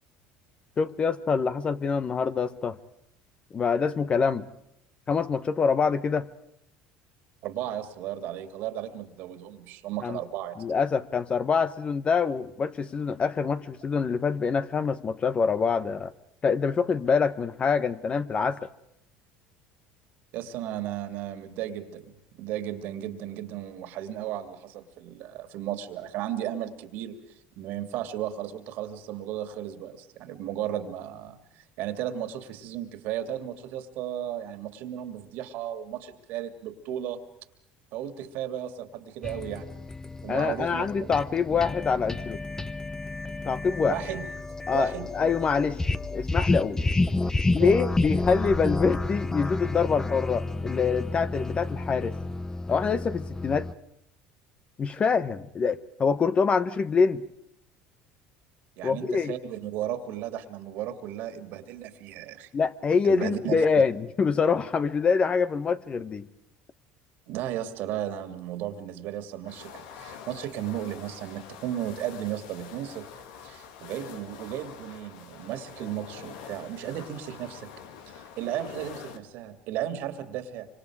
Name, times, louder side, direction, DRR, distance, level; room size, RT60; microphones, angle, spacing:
voice 1, 0.8-2.8 3.5-4.5 5.1-6.3 10.0-10.2 10.6-16.1 16.4-18.7 40.3-42.4 43.4-44.0 44.7-45.8 46.1-46.8 47.5-52.2 52.7-53.7 54.8-57.2 58.8-59.3 62.5-66.3, left 5 dB, 30° left, 13 dB, 1.2 m, -25 dB
voice 2, 7.4-10.5 20.3-22.1 22.4-27.2 27.6-37.2 37.9-39.7 40.2-41.1 43.9-44.3 44.7-45.1 47.6-47.8 58.8-62.5 63.0-63.6 67.3-73.1 73.4-77.7 78.1-80.7, right 11 dB, 70° right, 8 dB, 2.6 m, -35 dB
sound 1, 39.2-53.7, left 2 dB, 15° left, 0.9 m, -30 dB
sound 2, 69.4-79.2, left 7 dB, 90° left, 2.2 m, -45 dB
25.5 x 25.5 x 5.0 m, 0.77 s
supercardioid pair, 105°, 3 cm